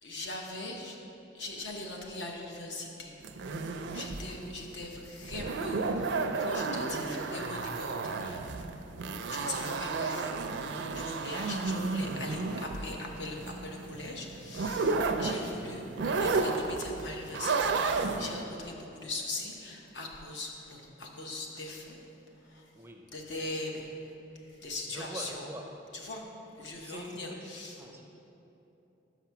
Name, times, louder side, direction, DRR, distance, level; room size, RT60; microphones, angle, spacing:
voice 1, 0.0-1.0 1.3-3.1 3.9-8.4 9.2-10.4 10.9-22.0 22.4-22.7 23.1-23.9 24.4-25.5 25.9-26.2 26.6-27.8, left 2 dB, 70° left, 0 dB, 0.9 m, -41 dB
sound 1, 3.2-18.4, right 3 dB, 70° right, 0.4 m, -32 dB
voice 2, 15.7-16.0 22.7-23.1 24.9-25.8 26.8-28.0, right 1 dB, 15° right, 2 dB, 0.4 m, -45 dB
5.9 x 5.9 x 5.8 m, 3.0 s
head